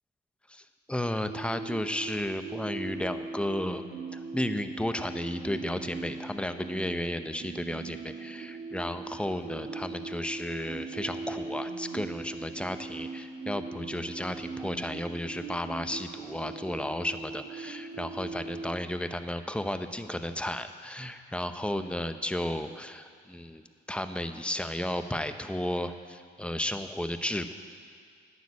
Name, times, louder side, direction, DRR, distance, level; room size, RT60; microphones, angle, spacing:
voice 1, 0.5-3.8 4.1-23.6 23.9-27.5, left 1 dB, 5° left, 9 dB, 0.8 m, -33 dB
sound 1, 1.3-18.8, right 4 dB, 60° right, 1.6 m, -40 dB
11.5 x 9.4 x 8.5 m, 2.2 s
cardioid pair, 90°, 20 cm